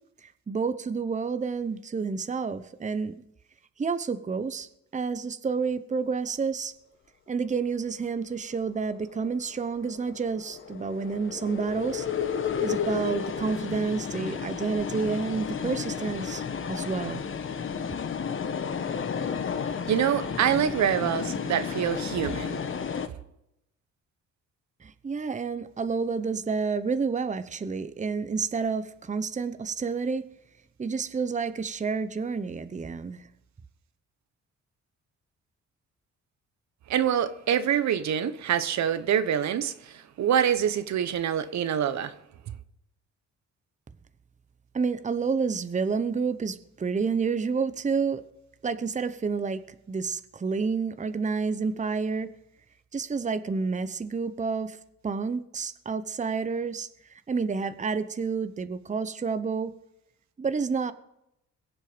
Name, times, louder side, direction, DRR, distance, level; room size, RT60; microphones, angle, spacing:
voice 1, 0.2-3.1 3.8-6.7 7.3-12.1 12.6-17.2 24.8-30.3 30.8-33.3 44.7-48.2 48.6-49.6 49.9-52.3 52.9-54.8 55.0-56.9 57.3-59.7 60.4-60.9, right 5 dB, 25° right, 0.9 m, -29 dB
sound 1, 9.0-23.1, left 7 dB, 45° left, 1.2 m, -32 dB
voice 2, 19.9-22.6 36.9-42.1, right 9 dB, 65° right, 1.0 m, -26 dB
22.5 x 7.5 x 5.0 m
cardioid pair, 90°, 30 cm